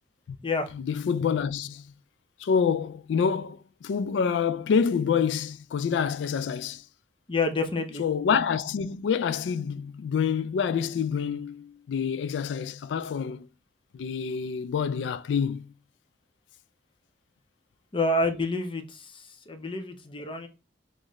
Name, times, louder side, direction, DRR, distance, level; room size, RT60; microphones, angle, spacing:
voice 1, 0.7-1.9 2.4-6.8 8.0-13.5 13.9-15.7, left 6 dB, 80° left, 0.3 m, -27 dB
voice 2, 7.3-8.0 17.9-20.5, left 2 dB, 30° left, 0.6 m, -28 dB
3.9 x 2.6 x 3.0 m
head